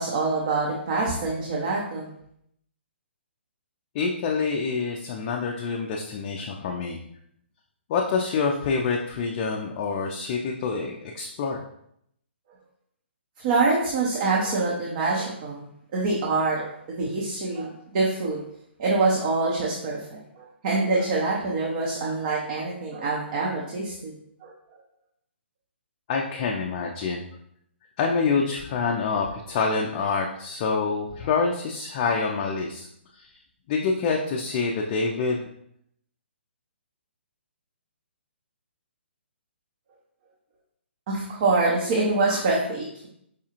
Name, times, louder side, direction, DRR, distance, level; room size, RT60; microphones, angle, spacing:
voice 1, 0.0-2.1 13.4-18.4 18.8-24.1 24.4-24.5 41.1-43.1, right 3 dB, 40° right, -3 dB, 0.7 m, -25 dB
voice 2, 3.9-7.0 7.9-11.6 26.1-27.3 28.0-32.9 33.1-33.3 33.7-35.4, left 4 dB, 35° left, 0 dB, 0.4 m, -26 dB
4.8 x 2.3 x 2.9 m, 0.72 s
figure-of-eight pair, 135°, 7 cm